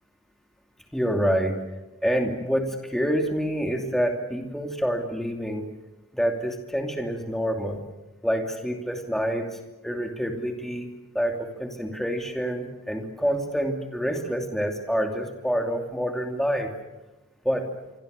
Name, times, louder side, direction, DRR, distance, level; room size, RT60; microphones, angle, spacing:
voice 1, 0.9-1.6 2.0-5.7 6.1-7.8 8.2-9.6 9.8-16.7 17.4-17.7, equal, ahead, 3 dB, 2.7 m, -27 dB
26.5 x 25.0 x 6.8 m, 1.1 s
head